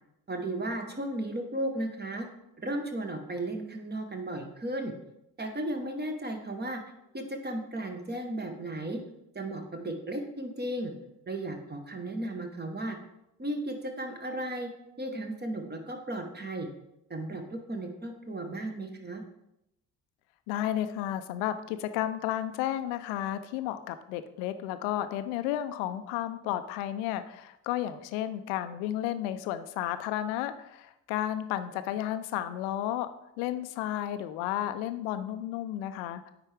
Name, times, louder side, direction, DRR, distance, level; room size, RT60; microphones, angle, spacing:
voice 1, 0.3-2.3 2.6-4.9 5.4-6.8 7.1-9.0 9.3-10.9 11.3-13.0 13.4-14.7 15.0-16.7 17.1-19.2, right 1 dB, 20° right, 4 dB, 1.4 m, -35 dB
voice 2, 20.5-33.1 33.4-36.3, left 12 dB, 65° left, 11 dB, 0.7 m, -32 dB
9.4 x 4.5 x 3.5 m, 0.85 s
figure-of-eight pair, 50°, 47 cm